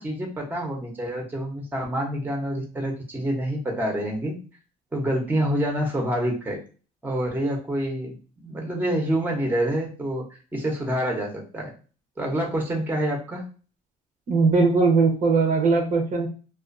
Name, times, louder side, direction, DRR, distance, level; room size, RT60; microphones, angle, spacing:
voice 1, 0.0-4.4 4.9-6.6 7.0-8.2 8.4-10.2 10.5-11.7 12.2-13.4, right 1 dB, 10° right, 0 dB, 0.8 m, -27 dB
voice 2, 14.3-16.3, right 4 dB, 50° right, 1 dB, 0.8 m, -20 dB
2.5 x 2.3 x 2.5 m, 0.37 s
cardioid pair, 110°, 17 cm